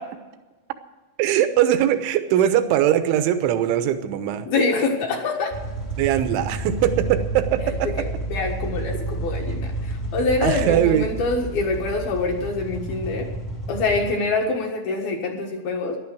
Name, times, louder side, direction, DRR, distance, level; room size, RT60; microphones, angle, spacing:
voice 1, 1.2-4.5 6.0-8.1 10.4-11.1, right 11 dB, 80° right, 9 dB, 3.3 m, -21 dB
voice 2, 4.5-5.5 8.0-13.3 13.7-16.0, left 3 dB, 60° left, 2 dB, 2.9 m, -25 dB
sound 1, 5.5-14.1, right 2 dB, 35° left, 1.0 m, -30 dB
15.0 x 11.5 x 6.2 m, 1.2 s
omnidirectional pair, 5.7 m